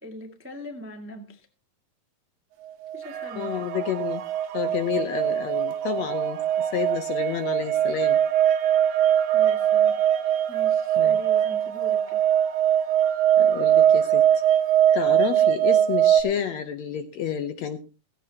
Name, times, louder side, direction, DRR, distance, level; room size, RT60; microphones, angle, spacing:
voice 1, 0.0-1.5 2.9-3.7 9.3-10.0 10.5-12.2, left 1 dB, 10° right, 4 dB, 0.5 m, -41 dB
sound 1, 2.9-16.2, right 10 dB, 70° right, 1.9 m, -21 dB
sound 2, 3.0-15.3, right 9 dB, 90° right, 2.9 m, -42 dB
voice 2, 3.3-4.2 4.5-8.2 11.0-11.2 13.4-14.4 14.9-17.8, left 9 dB, 70° left, 9 dB, 1.7 m, -30 dB
16.5 x 16.5 x 2.9 m, 0.31 s
omnidirectional pair, 4.0 m